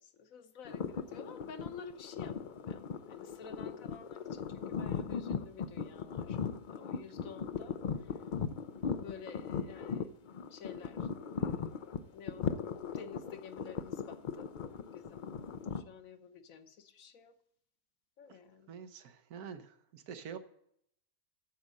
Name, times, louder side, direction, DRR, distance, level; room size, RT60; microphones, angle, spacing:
voice 1, 0.0-8.2 8.7-10.1 10.5-14.5 14.9-15.2 15.7-17.4 18.2-18.8, left 6 dB, 70° left, 1.3 m, -51 dB
sound 1, 0.7-15.8, left 6 dB, 85° left, 0.4 m, -38 dB
voice 2, 18.7-20.4, right 7 dB, 85° right, 1.4 m, -46 dB
9.2 x 7.3 x 6.5 m
omnidirectional pair, 1.5 m